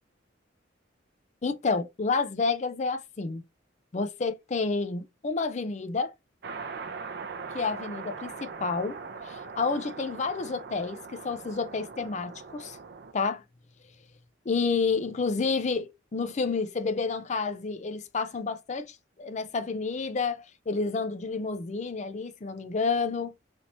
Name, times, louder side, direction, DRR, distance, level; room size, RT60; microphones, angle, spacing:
voice 1, 1.4-3.4 3.9-6.1 7.5-9.0 9.2-12.8 13.1-13.4 14.5-23.3, left 4 dB, 35° left, 0.4 m, -30 dB
sound 1, 6.4-13.1, right 5 dB, 55° right, 0.5 m, -41 dB
3.3 x 2.7 x 2.9 m
head